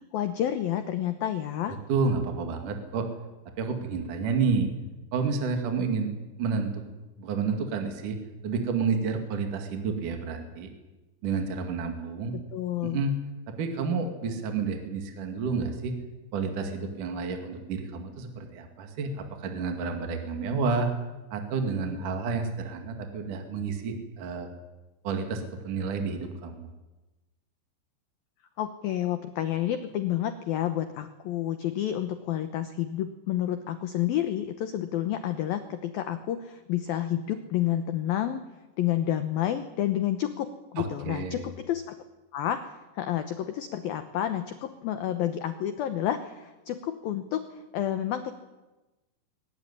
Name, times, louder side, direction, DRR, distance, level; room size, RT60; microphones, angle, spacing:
voice 1, 0.0-1.8 12.3-13.0 28.6-38.4 38.8-42.0 42.3-48.3, left 11 dB, 85° left, 10 dB, 2.0 m, -30 dB
voice 2, 1.9-3.1 3.6-4.7 5.1-6.1 6.4-6.8 7.2-8.2 8.4-10.7 11.2-12.3 12.8-13.2 13.6-15.9 16.3-20.9 21.3-24.5 25.0-26.7 40.8-41.4, right 4 dB, 50° right, 5 dB, 3.1 m, -30 dB
22.0 x 19.0 x 9.9 m, 1.1 s
omnidirectional pair, 5.8 m